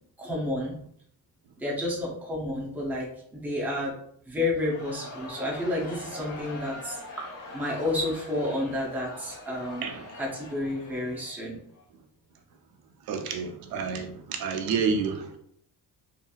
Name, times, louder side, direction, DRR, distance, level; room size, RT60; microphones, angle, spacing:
voice 1, 0.2-0.7 1.6-3.9 4.3-7.0 7.5-9.9 10.2-11.6, left 1 dB, 5° right, -4 dB, 0.6 m, -30 dB
Crowd, 4.6-11.8, left 2 dB, 60° left, 1.1 m, -43 dB
voice 2, 13.1-15.4, right 5 dB, 80° right, 4 dB, 0.5 m, -29 dB
2.9 x 2.6 x 2.3 m, 0.66 s
cardioid pair, 160°, 35 cm